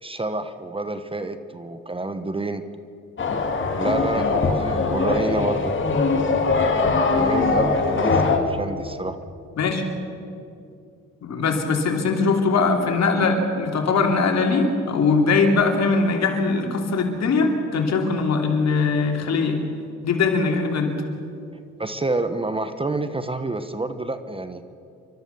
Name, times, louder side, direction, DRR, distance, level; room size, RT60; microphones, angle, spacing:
voice 1, 0.0-2.6 3.7-5.7 7.1-9.2 21.8-24.6, right 2 dB, 20° right, 10 dB, 1.1 m, -28 dB
sound 1, 3.2-8.4, left 4 dB, 40° left, 2.4 m, -21 dB
voice 2, 11.2-19.6 20.0-20.9, left 4 dB, 60° left, 3 dB, 3.1 m, -21 dB
29.0 x 13.0 x 7.0 m, 2.5 s
cardioid pair, 90°, 30 cm